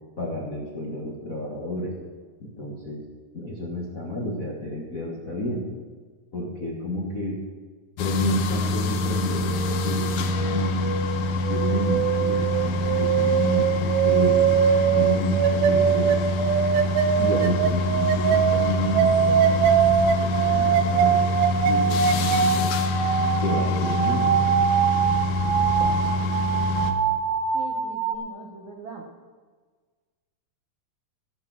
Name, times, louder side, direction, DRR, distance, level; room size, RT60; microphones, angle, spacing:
voice 1, 0.2-1.9 2.4-3.0 3.3-5.6 6.3-7.4 8.0-10.9 11.5-14.4 14.9-16.2 17.2-19.6 20.2-21.2 21.7-22.7 23.4-24.3, left 1 dB, 45° left, -4 dB, 1.0 m, -30 dB
sound 1, 8.0-26.9, left 2 dB, 75° left, 2.4 m, -26 dB
sound 2, 9.0-28.2, right 8 dB, 90° right, 1.6 m, -23 dB
voice 2, 27.5-29.1, right 4 dB, 75° right, 1 dB, 1.1 m, -41 dB
17.0 x 5.9 x 6.2 m, 1.4 s
omnidirectional pair, 4.1 m